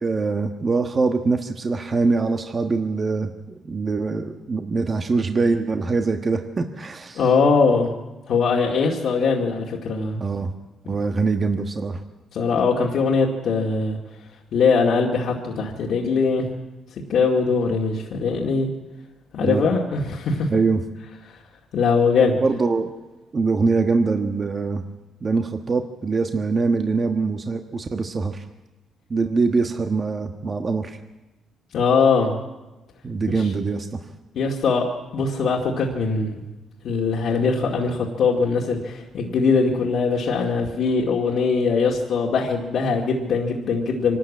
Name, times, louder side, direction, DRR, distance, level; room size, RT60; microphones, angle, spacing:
voice 1, 0.0-3.3 3.6-7.2 10.2-10.5 10.9-12.0 19.4-19.6 20.5-20.8 22.4-22.9 23.3-24.8 25.2-28.4 29.1-31.0 33.0-34.0, right 4 dB, 35° right, 6 dB, 1.3 m, -23 dB
voice 2, 7.1-7.9 8.3-10.2 12.3-14.0 14.5-16.5 17.1-18.7 19.3-20.5 21.3-21.4 21.7-22.4 31.7-32.3 33.3-33.5 34.3-34.9 35.1-36.4 36.8-44.2, left 4 dB, 70° left, -2 dB, 2.2 m, -21 dB
25.0 x 12.5 x 8.5 m, 1.1 s
cardioid pair, 90°, 0 cm